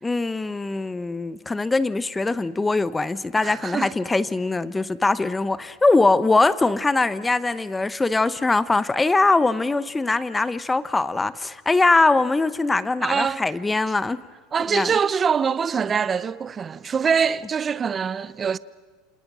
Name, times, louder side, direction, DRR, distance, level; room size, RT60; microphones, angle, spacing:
voice 1, 0.0-14.2 14.7-14.9, left 3 dB, 10° left, 0.9 m, -22 dB
voice 2, 3.4-3.9 13.0-13.4 14.5-18.6, right 6 dB, 25° right, 0.7 m, -24 dB
29.0 x 27.5 x 6.1 m
supercardioid pair, 140°, 0 cm